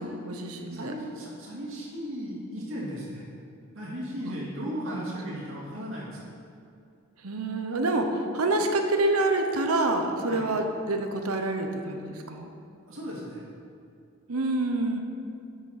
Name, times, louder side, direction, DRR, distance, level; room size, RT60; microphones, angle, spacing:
voice 1, 0.0-0.9 4.2-4.4 4.9-5.0 7.2-12.5 14.3-15.0, right 2 dB, 90° right, 5 dB, 0.9 m, -27 dB
voice 2, 0.7-3.3 3.7-6.3 10.3-10.5 12.9-13.4, equal, 65° right, -5 dB, 2.6 m, -36 dB
8.2 x 6.6 x 5.8 m, 2.5 s
head